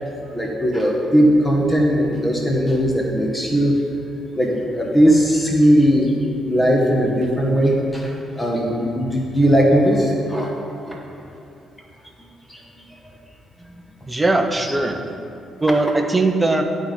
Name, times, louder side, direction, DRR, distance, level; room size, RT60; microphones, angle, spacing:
voice 1, 0.3-3.7 4.3-6.1 6.4-10.5 10.9-11.0 12.5-12.8, equal, 10° left, -2 dB, 1.0 m, -18 dB
voice 2, 14.1-15.0 15.6-16.6, right 2 dB, 15° right, 5 dB, 0.6 m, -19 dB
11.0 x 3.6 x 3.8 m, 2.6 s
cardioid pair, 90°, 0 cm